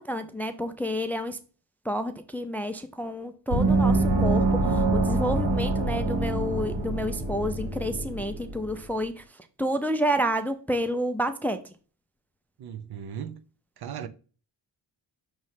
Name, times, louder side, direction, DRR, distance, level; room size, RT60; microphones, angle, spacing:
voice 1, 0.0-1.4 1.8-11.7, equal, 5° left, 0.4 m, -30 dB
Gong, 3.5-8.8, right 2 dB, 90° right, 1.5 m, -25 dB
voice 2, 12.6-13.4 13.8-14.1, right 8 dB, 60° right, 0.7 m, -37 dB
6.1 x 3.2 x 5.6 m
wide cardioid pair, 140°, 42 cm